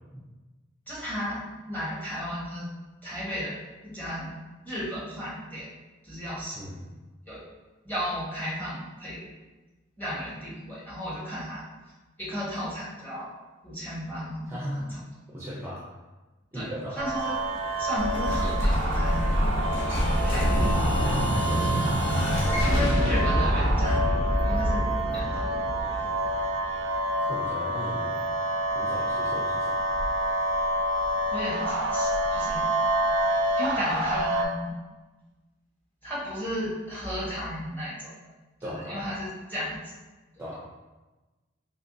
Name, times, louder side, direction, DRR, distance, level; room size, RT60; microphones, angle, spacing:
voice 1, 0.9-2.7 3.0-3.6 3.8-4.3 4.6-5.7 6.0-6.6 7.3-7.4 7.8-9.2 10.0-11.6 12.2-13.3 13.6-14.5 14.8-15.0 16.5-16.7 16.9-17.4 17.8-19.5 20.2-20.7 22.7-24.0 24.4-26.1 31.3-32.7 33.6-34.8 36.0-38.1 38.6-39.9, equal, 10° left, -9 dB, 1.1 m, -34 dB
voice 2, 14.5-14.9 15.3-15.8 16.5-17.0 20.4-21.8 22.4-22.7 27.3-28.2 28.7-29.8 38.6-39.0 40.4-40.5, equal, 10° right, -7 dB, 0.5 m, -37 dB
sound 1, 17.0-34.4, right 1 dB, 70° right, 0.4 m, -28 dB
Explosion, 18.0-26.6, equal, 65° left, 0.7 m, -25 dB
3.4 x 3.0 x 2.6 m, 1.2 s
head